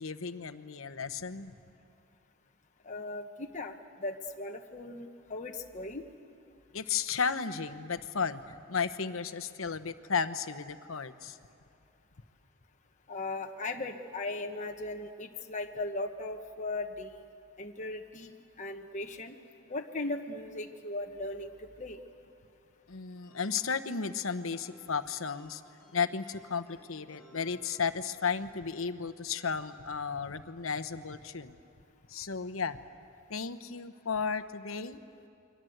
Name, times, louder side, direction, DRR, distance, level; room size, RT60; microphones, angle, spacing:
voice 1, 0.0-1.5 6.7-11.4 22.9-25.6 25.9-31.5 32.1-32.8 33.3-35.0, left 5 dB, 70° left, 11 dB, 1.0 m, -34 dB
voice 2, 2.8-3.7 4.0-6.1 13.1-17.2 17.6-19.3 19.7-21.5 21.8-22.0, left 2 dB, 35° left, 3 dB, 1.2 m, -38 dB
sound 1, 23.2-28.3, equal, 10° left, 5.4 m, -61 dB
29.5 x 23.5 x 8.0 m, 2.6 s
head